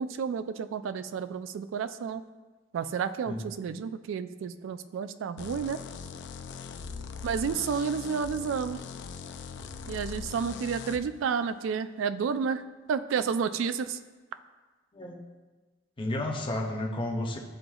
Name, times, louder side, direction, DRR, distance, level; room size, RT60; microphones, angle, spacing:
voice 1, 0.0-2.2 2.7-5.8 7.2-8.8 9.9-12.6 12.9-14.0, right 6 dB, 90° right, 11 dB, 0.3 m, -31 dB
sound 1, 5.4-11.0, left 5 dB, 65° left, 0.4 m, -40 dB
voice 2, 16.0-17.4, left 1 dB, 25° left, 0 dB, 0.7 m, -32 dB
10.5 x 3.9 x 2.3 m, 1.3 s
head